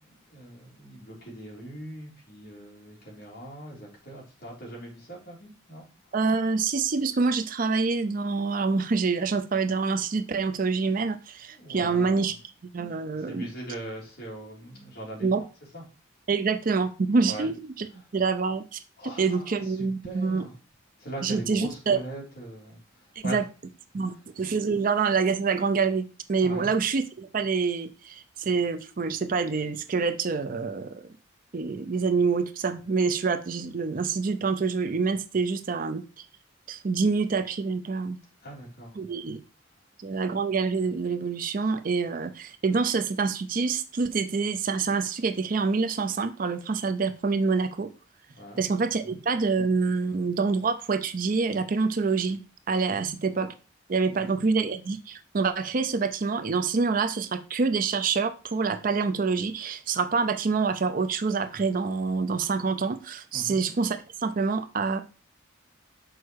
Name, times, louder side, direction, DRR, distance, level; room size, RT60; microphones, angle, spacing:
voice 1, 0.0-5.9 11.5-12.3 13.1-15.5 15.7-15.8 17.2-17.5 19.0-20.5 21.0-23.4 26.4-26.7 38.4-39.0 48.4-48.7 49.0-49.1 53.0-53.1 54.0-54.2 63.3-63.6, right 1 dB, 50° left, 3.5 m, -41 dB
voice 2, 6.1-12.4 12.6-13.5 15.2-15.4 16.3-17.9 18.1-18.8 19.2-20.4 21.2-22.0 23.2-23.4 23.9-31.0 31.5-36.2 36.7-38.2 39.0-39.4 40.0-47.9 48.6-52.4 52.7-53.5 53.9-65.0, right 4 dB, 40° right, 0.4 m, -26 dB
6.3 x 4.6 x 4.7 m
head